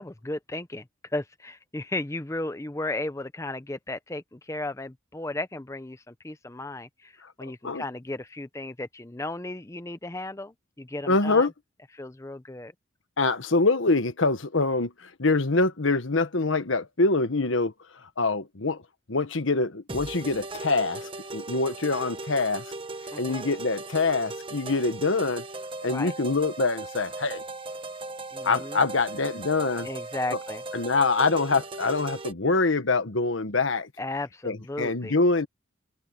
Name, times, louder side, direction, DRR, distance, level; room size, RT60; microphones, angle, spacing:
voice 1, 0.0-11.5 11.9-12.7 23.1-23.5 25.8-26.1 28.3-28.8 29.8-30.6 34.0-35.1, left 2 dB, 15° left, 0.6 m, -35 dB
voice 2, 7.4-7.8 11.1-11.5 13.2-17.7 18.2-18.8 19.1-22.6 23.2-25.4 25.8-27.4 28.4-29.9 30.7-33.9 34.4-35.5, left 3 dB, 80° left, 1.3 m, -25 dB
sound 1, 19.9-32.3, right 2 dB, 25° right, 1.1 m, -38 dB
head